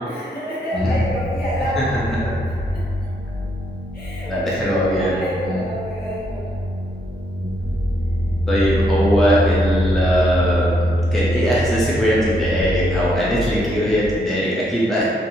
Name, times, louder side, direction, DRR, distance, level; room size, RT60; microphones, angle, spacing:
voice 1, 0.0-2.9 3.9-6.6, equal, 55° left, -9 dB, 0.9 m, -29 dB
sound 1, 0.8-14.2, equal, 85° right, 0.7 m, -24 dB
voice 2, 4.3-5.1 5.5-5.6 7.4-7.5 8.5-15.1, equal, ahead, -8 dB, 0.4 m, -20 dB
2.9 x 2.3 x 2.6 m, 2.3 s
wide cardioid pair, 150°, 19 cm